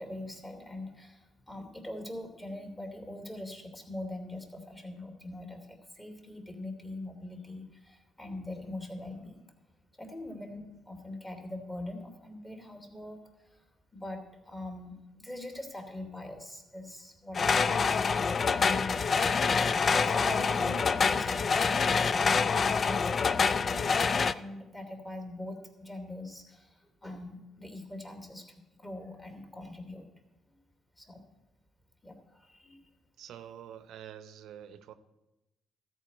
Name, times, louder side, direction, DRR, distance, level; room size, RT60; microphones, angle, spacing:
voice 1, 0.0-9.5 10.0-13.6 13.9-19.0 19.9-30.1 30.5-30.6 31.0-31.2 32.0-32.8, left 1 dB, 15° left, 2 dB, 2.4 m, -42 dB
sound 1, 17.3-24.3, left 5 dB, 40° left, 0.3 m, -26 dB
voice 2, 33.2-34.9, right 10 dB, 80° right, 12 dB, 0.7 m, -47 dB
13.5 x 4.6 x 8.8 m, 1.0 s
cardioid pair, 90°, 0 cm